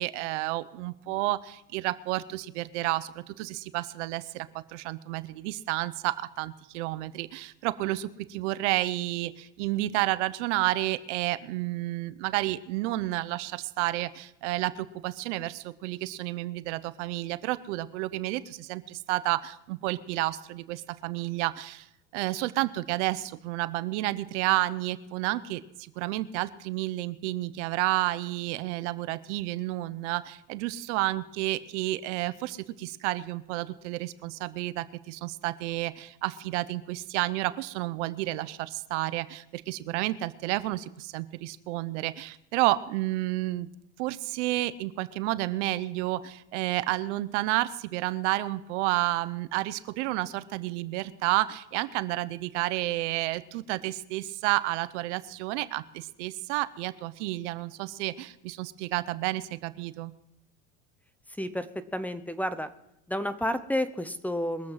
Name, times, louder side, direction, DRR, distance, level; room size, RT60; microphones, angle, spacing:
voice 1, 0.0-21.9 22.1-43.7 44.0-60.1, right 17 dB, 75° right, 15 dB, 0.9 m, -31 dB
voice 2, 61.4-62.7 63.1-64.7, left 1 dB, 5° left, 12 dB, 0.8 m, -31 dB
22.5 x 7.8 x 5.8 m, 0.83 s
supercardioid pair, 110°, 36 cm